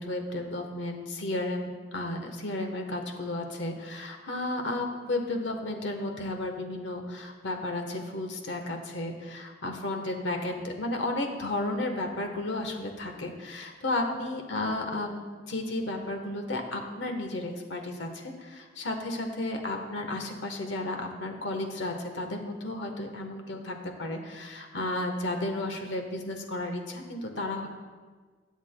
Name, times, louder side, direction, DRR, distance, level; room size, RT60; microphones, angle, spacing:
voice 1, 0.0-27.7, left 2 dB, 75° left, 4 dB, 1.2 m, -33 dB
21.0 x 8.3 x 2.2 m, 1.5 s
head